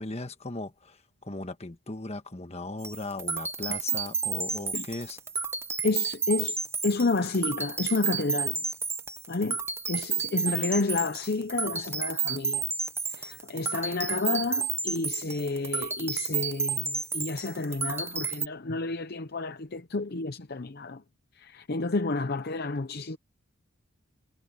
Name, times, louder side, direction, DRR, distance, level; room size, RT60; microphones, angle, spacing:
voice 1, 0.0-5.2, left 2 dB, 30° left, 1.4 m, -37 dB
sound 1, 2.8-18.5, right 5 dB, 10° right, 0.8 m, -31 dB
voice 2, 5.8-6.6 6.8-8.6 9.3-9.6 9.9-12.7 13.1-21.0 21.3-23.2, left 3 dB, 45° left, 0.7 m, -30 dB
head